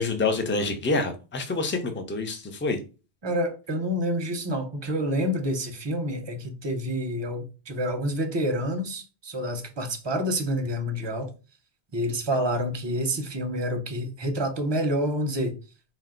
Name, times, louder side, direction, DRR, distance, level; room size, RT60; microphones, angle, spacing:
voice 1, 0.0-2.8, left 3 dB, 15° left, 0.4 m, -27 dB
voice 2, 3.2-11.3 11.9-15.5, equal, 30° right, 0.6 m, -28 dB
4.4 x 2.2 x 3.7 m
omnidirectional pair, 1.1 m